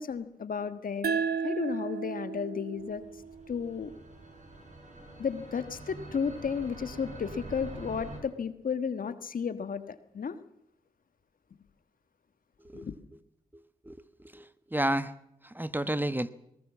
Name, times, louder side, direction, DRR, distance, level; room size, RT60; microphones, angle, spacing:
voice 1, 0.0-3.0 3.5-3.9 5.2-10.4 12.7-13.0, left 6 dB, 60° left, 11 dB, 1.5 m, -33 dB
sound 1, 1.0-4.2, right 6 dB, 75° right, 1.1 m, -34 dB
sound 2, 2.8-8.2, right 2 dB, 50° right, 6.7 m, -46 dB
voice 2, 13.5-15.1 15.4-16.3, right 1 dB, 10° right, 14 dB, 1.2 m, -32 dB
20.0 x 18.5 x 7.3 m, 0.77 s
supercardioid pair, 45°, 16 cm